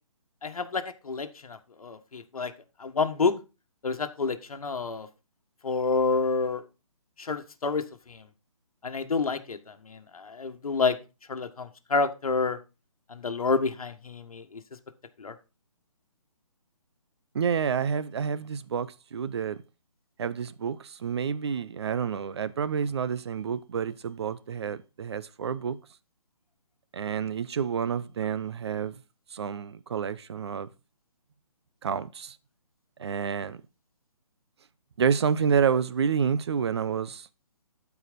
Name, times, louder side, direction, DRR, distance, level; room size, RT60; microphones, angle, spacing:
voice 1, 0.4-2.5 2.8-3.3 3.8-5.1 5.6-6.6 7.2-8.3 8.8-11.0 11.3-12.6 13.1-14.6 15.2-15.3, left 4 dB, 75° left, 1.6 m, -29 dB
voice 2, 17.3-19.6 20.2-25.8 26.9-29.0 29.3-30.7 31.8-32.4 33.0-33.6 35.0-37.3, right 7 dB, 45° right, 0.7 m, -29 dB
12.5 x 4.8 x 5.1 m
hypercardioid pair, 165°, 19 cm